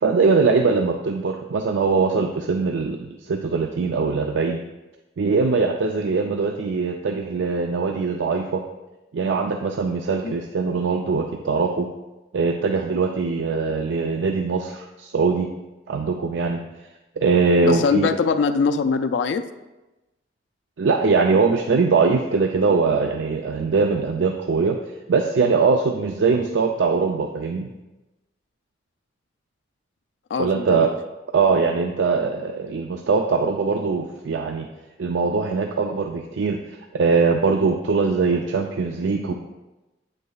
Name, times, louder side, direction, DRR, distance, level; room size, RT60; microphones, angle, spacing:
voice 1, 0.0-4.6 5.2-8.6 9.1-11.9 12.3-15.5 15.9-16.6 17.2-18.1 20.8-24.8 25.1-27.7 30.4-30.9 31.3-34.7 35.0-36.6 36.9-39.3, right 4 dB, 85° right, 4 dB, 0.4 m, -21 dB
voice 2, 17.6-19.4 30.3-30.9 39.3-39.4, left 5 dB, 75° left, 8 dB, 0.3 m, -22 dB
8.5 x 6.5 x 2.3 m, 1.0 s
head